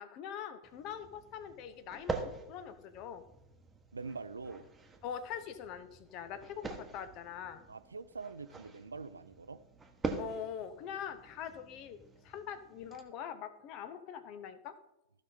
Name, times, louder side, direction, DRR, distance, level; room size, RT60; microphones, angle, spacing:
voice 1, 0.0-3.2 5.0-7.6 10.2-14.8, left 8 dB, 40° left, 0.8 m, -43 dB
sound 1, 0.6-13.0, right 3 dB, 10° right, 1.2 m, -45 dB
voice 2, 3.9-4.7 7.7-9.6, right 4 dB, 75° right, 0.5 m, -44 dB
14.5 x 5.4 x 4.1 m
figure-of-eight pair, 90°, 0 cm